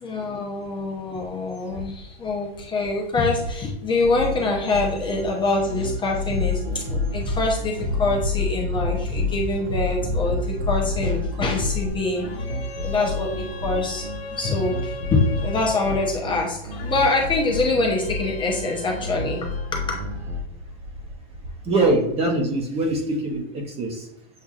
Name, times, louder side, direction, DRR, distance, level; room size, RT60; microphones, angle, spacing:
voice 1, 0.0-12.2 12.8-14.1 14.3-16.6 16.8-20.0, left 3 dB, 15° left, -1 dB, 0.7 m, -25 dB
sound 1, 4.0-20.4, left 1 dB, 85° right, 0.9 m, -32 dB
Bass drum, 6.3-11.9, left 3 dB, 60° right, 1.3 m, -27 dB
sound 2, 12.1-16.2 16.7-19.7, left 4 dB, 80° left, 1.2 m, -38 dB
voice 2, 21.6-24.1, right 2 dB, 20° right, 2 dB, 0.8 m, -23 dB
7.2 x 2.6 x 2.4 m, 0.79 s
hypercardioid pair, 135°, 30 cm